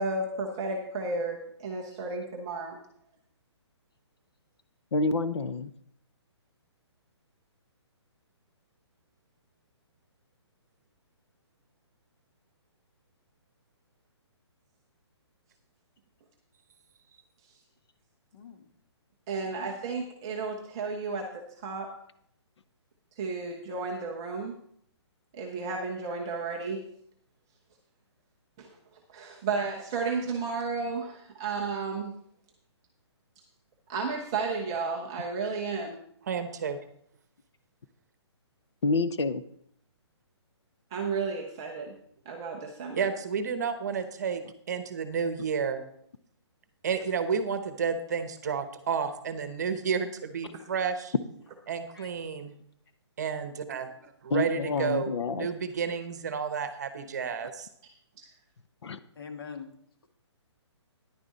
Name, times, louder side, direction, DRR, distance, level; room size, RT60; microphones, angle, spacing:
voice 1, 0.0-2.8 19.3-21.9 23.2-24.5 25.3-26.8 28.6-28.7 29.1-32.1 33.9-36.0 40.9-42.0 42.3-43.1 58.2-58.3, right 4 dB, 10° right, -1 dB, 0.4 m, -33 dB
voice 2, 4.9-5.7 38.8-39.4 54.3-55.5 58.8-59.0, left 3 dB, 70° left, 12 dB, 0.8 m, -28 dB
voice 3, 18.3-18.7 19.4-19.7 51.9-52.1 59.1-59.7, left 6 dB, 50° left, 5 dB, 1.6 m, -43 dB
voice 4, 36.3-36.8 42.9-45.8 46.8-51.1 51.7-52.5 53.2-53.9 54.2-57.7, right 6 dB, 35° right, 10 dB, 0.9 m, -31 dB
10.5 x 9.7 x 4.0 m, 0.68 s
hypercardioid pair, 175°, 15 cm